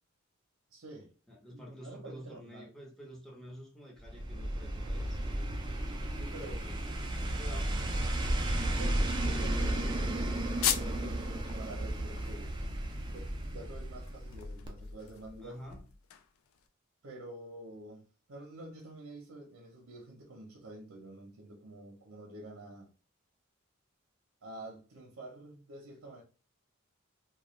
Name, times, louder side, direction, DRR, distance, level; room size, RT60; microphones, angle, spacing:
voice 1, 0.7-1.1 1.5-2.7 6.1-6.6 8.8-10.2 10.6-12.5 13.1-15.6 17.0-18.0 18.3-22.9 24.4-26.2, right 2 dB, 85° right, 0.7 m, -48 dB
voice 2, 1.3-5.2 6.5-7.7 15.4-15.9, equal, ahead, 0.8 m, -49 dB
sound 1, 4.0-14.4 14.7-14.8, right 1 dB, 20° right, 0.4 m, -33 dB
sound 2, 10.6-11.1 11.5-11.6 12.0-16.6, left 9 dB, 75° left, 0.3 m, -38 dB
2.3 x 2.2 x 3.0 m
head